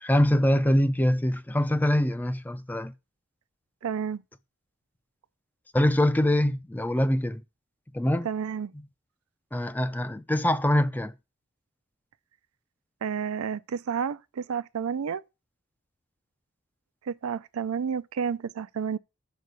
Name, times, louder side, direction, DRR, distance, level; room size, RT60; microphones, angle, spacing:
voice 1, 0.0-2.9 5.7-7.4 7.9-8.3 9.5-11.1, left 1 dB, 10° left, 0.4 m, -24 dB
voice 2, 3.8-4.2 8.2-8.7 13.0-15.2 17.1-19.0, right 7 dB, 85° right, 0.4 m, -30 dB
6.3 x 4.7 x 6.6 m
head